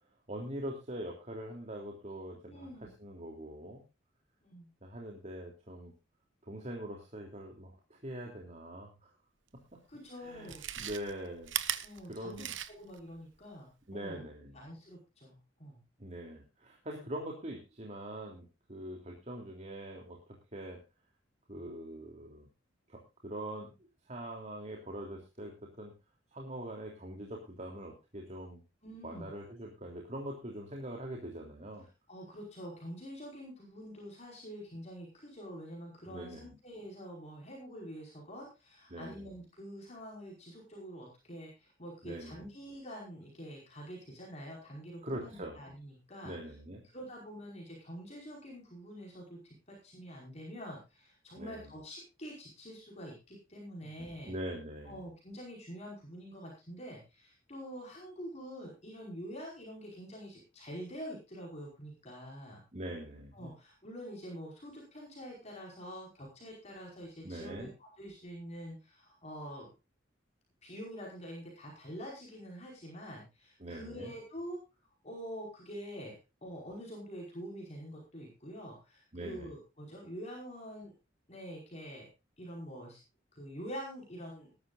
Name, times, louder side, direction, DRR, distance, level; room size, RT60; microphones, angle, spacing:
voice 1, 0.3-2.7 3.0-3.8 4.8-5.9 6.5-9.1 10.2-12.5 13.9-14.6 16.0-20.8 21.5-22.5 22.9-23.7 24.1-25.9 26.3-28.6 29.0-31.8 36.1-36.5 38.9-39.2 42.0-42.4 45.0-45.6 46.2-46.8 51.4-51.7 54.2-55.0 62.7-63.5 67.2-67.7 73.6-74.1 79.1-79.5, right 1 dB, 35° right, 0 dB, 3.2 m, -43 dB
voice 2, 2.5-2.9 4.4-4.7 9.9-10.7 11.8-14.2 14.5-15.8 28.8-29.3 32.1-46.3 46.8-54.4 54.8-62.6 63.3-69.7 70.6-74.6 75.0-80.9 81.3-82.1 82.4-83.0 83.3-84.5, equal, 35° left, -2 dB, 5.1 m, -46 dB
Chewing mastication, 9.6-9.7 10.3-13.0 13.4-13.5, right 11 dB, 65° right, 1.1 m, -38 dB
20.0 x 12.0 x 2.6 m, 0.28 s
head